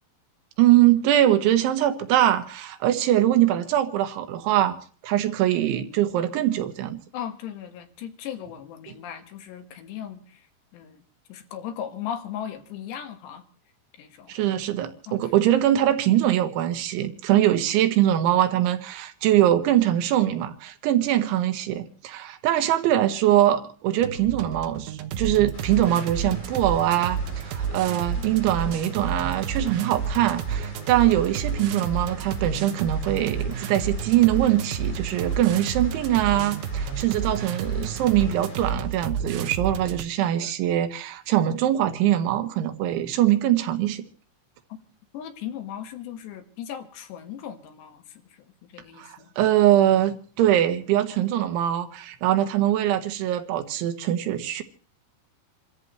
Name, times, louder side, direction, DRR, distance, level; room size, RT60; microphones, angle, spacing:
voice 1, 0.6-4.8 5.0-7.0 14.3-44.1 49.0-54.6, right 12 dB, 85° right, 3.7 m, -22 dB
voice 2, 7.1-10.4 10.7-11.0 11.3-13.4 14.0-14.4 15.1-15.2 45.1-48.2 48.7-49.3, left 9 dB, 70° left, 3.6 m, -37 dB
sound 1, 24.0-40.0, right 6 dB, 70° right, 2.4 m, -30 dB
sound 2, 25.5-38.7, left 2 dB, 30° left, 7.2 m, -46 dB
28.0 x 14.0 x 3.1 m
omnidirectional pair, 5.3 m